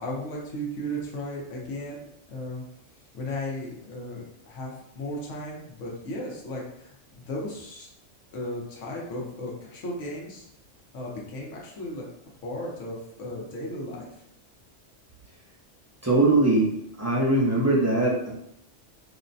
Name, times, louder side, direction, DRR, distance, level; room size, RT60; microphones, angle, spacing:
voice 1, 0.0-2.0 2.3-2.6 3.1-7.9 8.3-10.5 10.9-12.0 12.4-14.1, left 1 dB, 80° left, -3 dB, 1.2 m, -35 dB
voice 2, 16.0-16.7 17.0-18.3, right 2 dB, 20° right, -6 dB, 0.4 m, -21 dB
3.8 x 2.1 x 2.6 m, 0.79 s
omnidirectional pair, 1.3 m